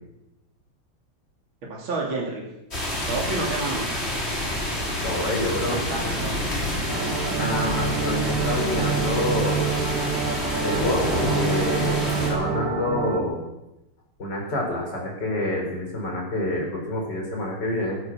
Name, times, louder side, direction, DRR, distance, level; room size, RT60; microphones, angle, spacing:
voice 1, 1.7-2.5 3.1-3.9 5.7-6.3, right 3 dB, 65° right, -2 dB, 3.7 m, -29 dB
sound 1, 2.7-12.3, left 1 dB, 30° left, 3.8 m, -28 dB
voice 2, 5.0-5.8 7.2-9.7 10.6-13.4 14.2-18.0, left 1 dB, 50° left, 0 dB, 5.3 m, -27 dB
sound 2, 6.9-13.2, right 6 dB, 40° right, 1.8 m, -27 dB
15.5 x 14.0 x 6.2 m, 0.92 s
omnidirectional pair, 2.4 m